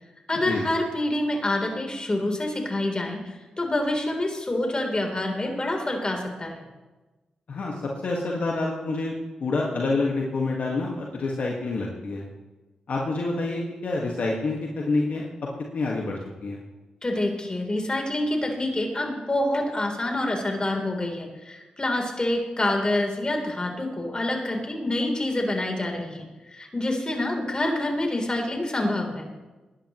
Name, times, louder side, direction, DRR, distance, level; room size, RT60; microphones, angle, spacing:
voice 1, 0.3-6.6 17.0-29.3, left 1 dB, 30° left, 2 dB, 3.6 m, -27 dB
voice 2, 8.0-12.2 12.9-15.3 15.7-16.6, left 3 dB, 65° left, -2 dB, 1.8 m, -27 dB
20.0 x 11.0 x 3.1 m, 1.2 s
supercardioid pair, 45°, 3 cm